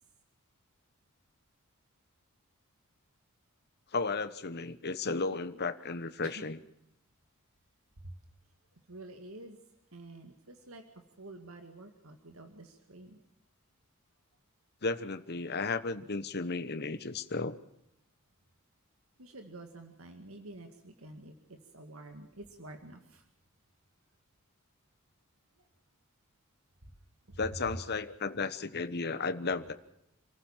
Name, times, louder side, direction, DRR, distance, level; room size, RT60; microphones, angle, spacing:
voice 1, 3.9-6.6 14.8-17.6 27.4-29.7, left 4 dB, 50° left, 11 dB, 1.2 m, -34 dB
voice 2, 8.9-9.6 9.9-10.8 11.2-13.2 19.2-23.2 27.3-27.4, right 2 dB, 70° right, 6 dB, 2.1 m, -49 dB
27.5 x 15.0 x 7.3 m, 0.82 s
head